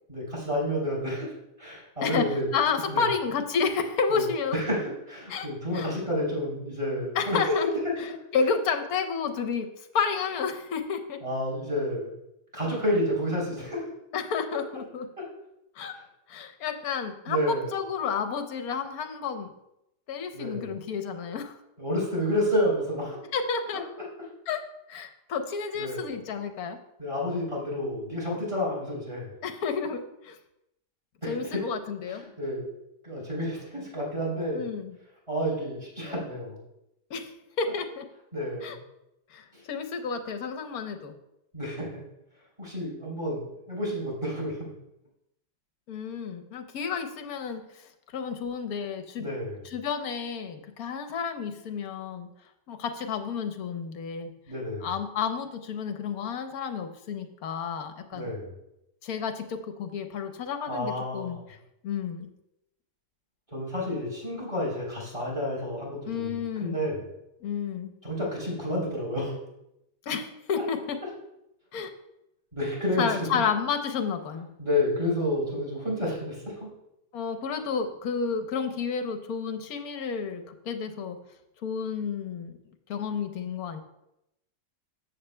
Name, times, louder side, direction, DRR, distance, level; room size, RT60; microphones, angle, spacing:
voice 1, 0.1-1.3 1.6-2.5 2.9-3.1 4.1-4.3 4.5-7.9 11.2-12.1 12.5-13.9 15.2-15.3 15.9-16.0 17.3-17.7 20.3-20.7 21.8-23.2 25.8-26.1 27.0-29.3 31.2-31.6 32.1-32.7 33.0-34.7 35.3-36.6 38.3-38.8 39.5-39.6 41.5-41.9 42.6-44.7 49.2-49.6 54.5-54.9 58.1-58.5 60.7-61.4 63.5-67.0 68.0-69.4 72.5-73.3 74.6-76.7, left 1 dB, 20° right, -4 dB, 3.5 m, -30 dB
voice 2, 2.5-4.6 5.3-5.9 7.2-7.7 8.3-9.7 9.9-11.2 14.1-15.1 15.8-15.9 16.3-19.5 20.1-21.6 23.3-23.8 24.5-24.6 24.9-26.8 29.4-30.4 31.3-32.2 34.5-34.9 37.1-37.3 37.6-38.1 38.6-38.8 39.3-41.1 45.9-47.6 48.1-49.3 49.7-52.3 52.7-54.3 54.8-58.3 59.0-61.4 61.8-62.3 66.1-66.8 67.4-67.9 70.1-71.0 71.7-71.9 73.0-74.5 77.1-81.2 81.6-82.5 82.9-83.8, left 6 dB, 65° left, 6 dB, 1.2 m, -31 dB
14.0 x 7.4 x 2.2 m, 0.85 s
omnidirectional pair, 1.9 m